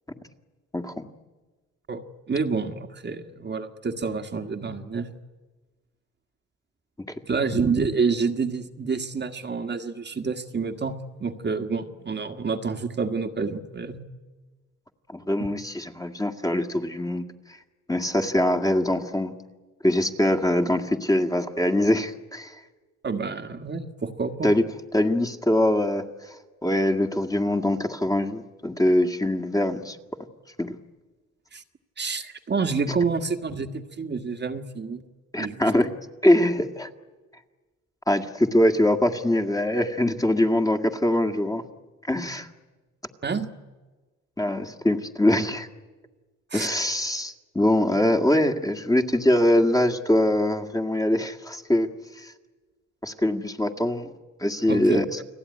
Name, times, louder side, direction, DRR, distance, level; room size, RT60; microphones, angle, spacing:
voice 1, 0.7-1.1 15.1-17.6 17.9-19.3 19.8-22.6 24.4-24.6 24.9-26.4 26.6-30.0 30.6-30.8 35.3-35.9 36.2-36.9 38.1-41.6 42.0-42.5 44.4-45.7 46.5-51.9 52.2-52.3 53.0-54.1 54.4-55.2, left 1 dB, 10° left, 5 dB, 1.9 m, -23 dB
voice 2, 2.3-5.1 7.3-14.0 23.0-24.5 31.5-31.6 32.0-35.0 35.4-35.6 43.2-43.5 46.5-46.8 54.7-55.2, right 4 dB, 35° right, 6 dB, 1.7 m, -28 dB
30.0 x 19.5 x 9.7 m, 1.3 s
cardioid pair, 90°, 30 cm